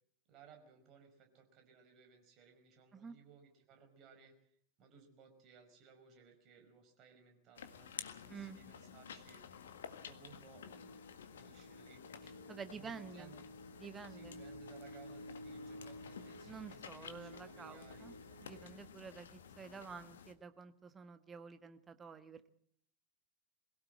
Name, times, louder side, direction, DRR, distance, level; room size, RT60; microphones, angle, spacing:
voice 1, 0.3-4.3 4.8-9.4 10.0-10.7 11.4-12.4 12.7-13.4 14.1-18.2, right 6 dB, 35° right, 5 dB, 5.2 m, -61 dB
sound 1, 7.6-20.3, left 7 dB, 65° left, 1.7 m, -53 dB
voice 2, 8.3-8.6 12.5-13.3 13.8-14.4 16.4-18.1 18.4-22.4, right 5 dB, 20° right, 11 dB, 1.5 m, -50 dB
sound 2, 10.5-18.7, equal, 80° right, 2.6 m, -54 dB
22.5 x 16.5 x 7.7 m, 0.67 s
figure-of-eight pair, 90°, 0 cm